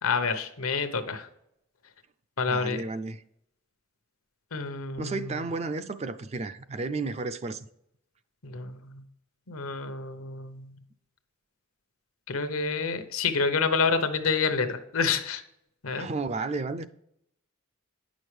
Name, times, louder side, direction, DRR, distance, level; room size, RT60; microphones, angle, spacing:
voice 1, 0.0-1.3 2.4-2.8 4.5-5.5 8.4-9.0 9.5-10.8 12.3-15.4 15.8-16.1, left 5 dB, 85° left, 0.9 m, -28 dB
voice 2, 2.5-3.2 5.0-7.7 16.0-16.9, right 3 dB, 30° right, 0.3 m, -32 dB
9.1 x 6.2 x 3.2 m
head